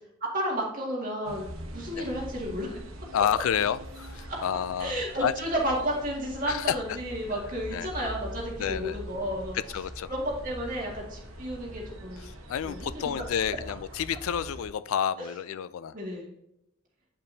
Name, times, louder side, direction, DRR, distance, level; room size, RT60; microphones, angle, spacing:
voice 1, 0.2-2.9 4.3-4.4 4.8-9.6 10.1-12.3 12.6-13.0 15.2-15.3 15.9-16.3, equal, 40° right, -3 dB, 2.0 m, -32 dB
sound 1, 1.2-14.7, equal, 85° right, 1.1 m, -43 dB
voice 2, 3.1-5.3 6.5-6.7 7.7-7.9 8.6-9.0 9.7-10.1 12.3-15.9, left 8 dB, 85° left, 16 dB, 0.3 m, -29 dB
8.7 x 5.3 x 2.7 m, 0.81 s
head